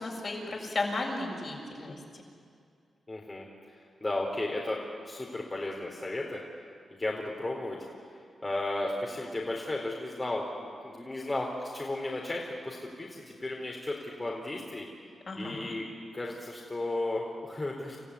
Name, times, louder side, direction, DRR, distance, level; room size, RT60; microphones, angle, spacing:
voice 1, 0.0-2.0 15.3-15.7, left 2 dB, 50° left, -1 dB, 6.9 m, -34 dB
voice 2, 3.1-6.4 7.0-7.8 8.0-8.1 8.4-14.9 15.4-15.9 16.1-18.0, left 2 dB, 30° left, -2 dB, 4.1 m, -34 dB
29.5 x 14.5 x 9.9 m, 2.3 s
cardioid pair, 55°, 0 cm